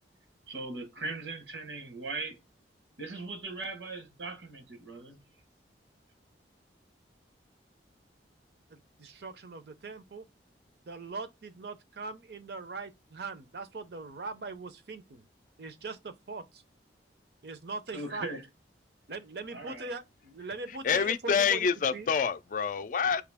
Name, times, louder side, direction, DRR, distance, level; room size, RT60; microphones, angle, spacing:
voice 1, 0.5-2.4 3.0-5.2 17.9-18.5 19.5-19.9, right 3 dB, 85° right, 1.2 m, -39 dB
voice 2, 8.7-10.2 10.9-15.3 15.6-16.6 17.4-18.3 19.1-22.1, right 3 dB, 60° right, 0.6 m, -41 dB
voice 3, 20.8-23.2, left 6 dB, 45° left, 0.4 m, -27 dB
4.9 x 2.8 x 3.4 m
head